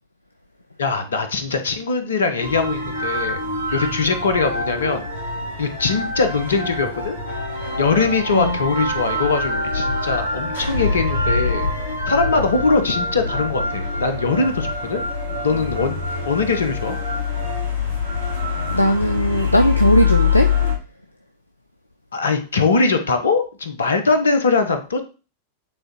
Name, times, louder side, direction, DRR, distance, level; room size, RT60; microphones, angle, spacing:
voice 1, 0.8-3.4 3.7-5.1 5.6-7.2 7.8-11.7 12.1-15.0 15.4-16.0 16.2-17.0 22.1-25.0, left 4 dB, 70° left, 8 dB, 1.0 m, -21 dB
sound 1, 2.4-20.7, left 3 dB, 85° right, 2.8 m, -24 dB
voice 2, 18.7-20.5, equal, 85° left, 7 dB, 0.4 m, -18 dB
8.4 x 3.8 x 3.0 m, 0.33 s
figure-of-eight pair, 90°, 0 cm